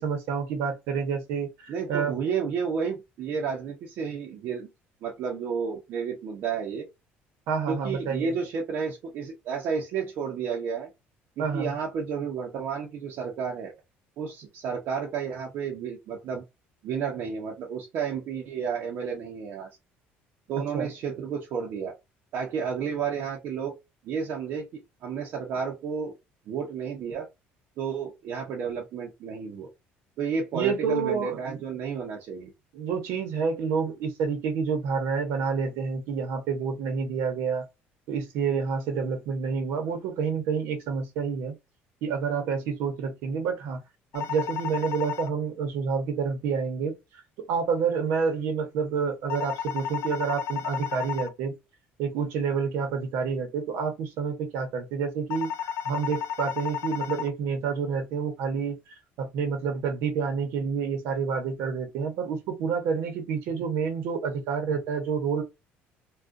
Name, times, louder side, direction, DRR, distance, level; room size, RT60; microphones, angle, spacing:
voice 1, 0.0-2.1 7.5-8.3 11.4-11.7 20.7-20.9 30.5-31.6 32.7-37.6 38.1-41.6 42.0-43.8 44.1-46.9 47.5-51.6 52.0-65.4, right 6 dB, 75° right, 1.0 m, -28 dB
voice 2, 1.7-4.7 5.0-6.8 7.7-10.9 11.4-13.7 14.2-16.4 16.8-19.7 20.5-21.9 22.3-23.7 24.0-26.1 26.5-27.3 27.8-29.7 30.2-32.5, right 6 dB, 50° right, 0.7 m, -31 dB
sound 1, 44.1-45.3 49.3-51.3 55.3-57.3, left 9 dB, 70° left, 0.4 m, -32 dB
3.6 x 2.4 x 2.6 m
cardioid pair, 165°, 4 cm